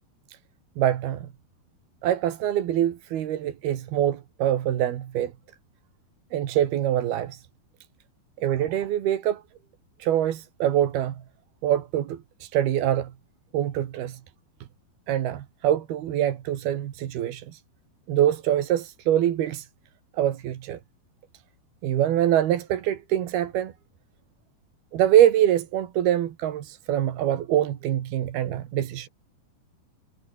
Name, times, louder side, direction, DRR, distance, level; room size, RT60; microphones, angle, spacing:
voice 1, 0.8-1.3 2.0-5.3 6.3-7.4 8.4-9.4 10.0-11.2 11.6-13.1 13.5-14.2 15.1-17.6 18.1-19.7 20.2-20.8 21.8-23.7 24.9-29.1, right 11 dB, 75° right, 3.7 m, -24 dB
omnidirectional pair, 4.5 m